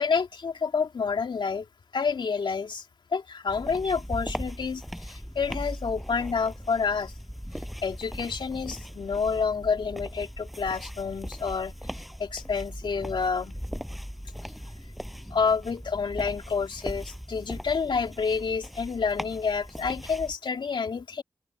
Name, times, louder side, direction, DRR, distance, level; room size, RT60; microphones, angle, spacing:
voice 1, 0.0-1.7 1.9-2.8 3.1-7.1 7.8-11.7 12.2-13.5 15.3-21.2, left 5 dB, 70° left, 3.0 m, -28 dB
sound 1, 3.5-20.4, equal, ahead, 6.2 m, -39 dB
open air
cardioid pair, 65°, 8 cm